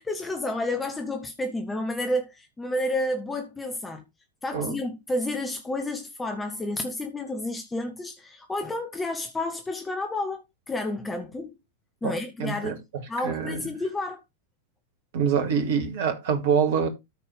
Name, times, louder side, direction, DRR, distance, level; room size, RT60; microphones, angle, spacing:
voice 1, 0.0-4.0 4.4-11.6 12.0-12.8 13.1-14.2, left 1 dB, 10° left, 1.0 m, -30 dB
voice 2, 12.4-12.8 13.2-13.7 15.1-16.9, right 7 dB, 55° right, 1.9 m, -25 dB
13.5 x 4.5 x 3.4 m
figure-of-eight pair, 90°, 0 cm